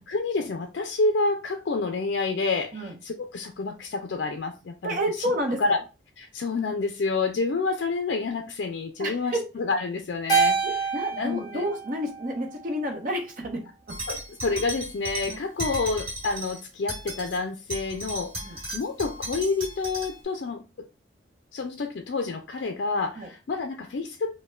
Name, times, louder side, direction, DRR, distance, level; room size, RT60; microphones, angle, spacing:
voice 1, 0.0-5.0 5.6-5.8 6.2-10.6 11.2-11.6 14.1-18.3 18.7-20.6 21.5-24.3, left 3 dB, 65° left, 0.4 m, -28 dB
voice 2, 4.8-5.8 9.0-9.5 10.6-14.0 15.3-15.4 18.4-18.6 23.1-23.3, equal, 45° right, 0.8 m, -30 dB
Keyboard (musical), 10.3-12.8, right 5 dB, 20° left, 0.9 m, -27 dB
sound 1, 13.9-16.6 16.9-17.4 17.7-20.2, equal, 30° right, 1.6 m, -35 dB
5.1 x 2.1 x 2.3 m
head